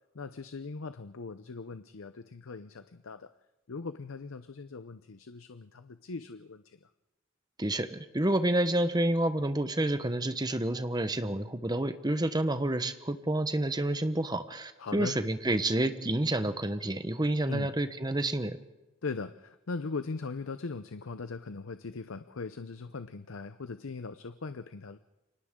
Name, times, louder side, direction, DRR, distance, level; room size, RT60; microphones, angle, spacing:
voice 1, 0.1-3.3 3.7-6.9 14.8-15.2 17.5-17.7 19.0-25.0, left 4 dB, 80° left, 11 dB, 0.7 m, -40 dB
voice 2, 7.6-18.6, right 1 dB, 20° right, 10 dB, 1.0 m, -29 dB
29.0 x 24.5 x 3.7 m, 1.0 s
head